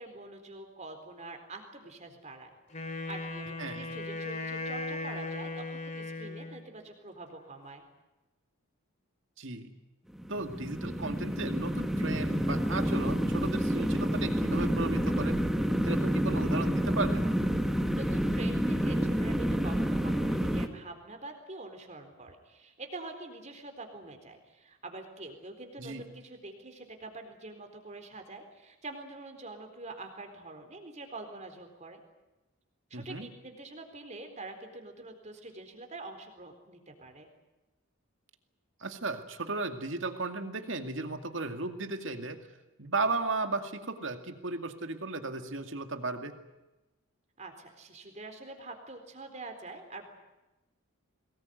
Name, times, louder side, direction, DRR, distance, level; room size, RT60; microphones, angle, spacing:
voice 1, 0.0-2.5 2.8-7.8 17.6-32.0 32.9-37.3 47.4-50.1, right 2 dB, 35° right, 5 dB, 4.1 m, -45 dB
Wind instrument woodwind instrument, 2.7-6.7, left 2 dB, 35° left, 2.5 m, -37 dB
voice 2, 3.6-3.9 9.4-9.7 10.3-15.4 15.8-17.2 25.8-26.0 32.9-33.3 38.8-42.4 42.8-46.3, right 3 dB, 60° right, 6 dB, 2.3 m, -35 dB
sound 1, 10.1-20.7, equal, ahead, 1.3 m, -29 dB
23.0 x 19.5 x 9.4 m, 1.0 s
head